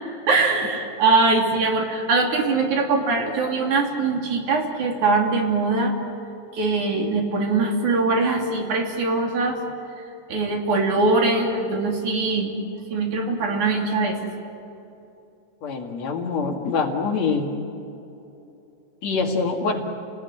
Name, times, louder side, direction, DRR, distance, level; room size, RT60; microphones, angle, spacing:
voice 1, 0.3-5.9 6.5-9.6 10.3-12.5 12.9-14.2, right 3 dB, 65° right, 1 dB, 4.3 m, -22 dB
voice 2, 15.6-17.5 19.0-19.9, left 4 dB, 55° left, 2 dB, 3.2 m, -25 dB
30.0 x 19.5 x 9.7 m, 2.9 s
omnidirectional pair, 3.8 m